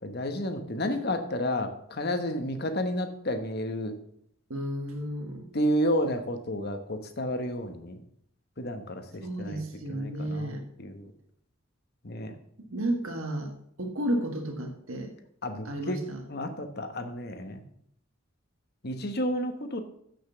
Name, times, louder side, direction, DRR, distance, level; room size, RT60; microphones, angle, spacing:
voice 1, 0.0-4.0 5.5-8.0 8.6-9.6 9.9-11.1 12.0-12.3 15.4-16.0 16.3-17.6 18.8-19.8, equal, 50° left, 8 dB, 1.1 m, -31 dB
voice 2, 4.5-5.5 9.2-10.6 12.7-13.5 13.8-15.1 15.6-16.2, right 1 dB, 90° right, 3 dB, 1.6 m, -32 dB
8.2 x 6.5 x 6.8 m, 0.69 s
head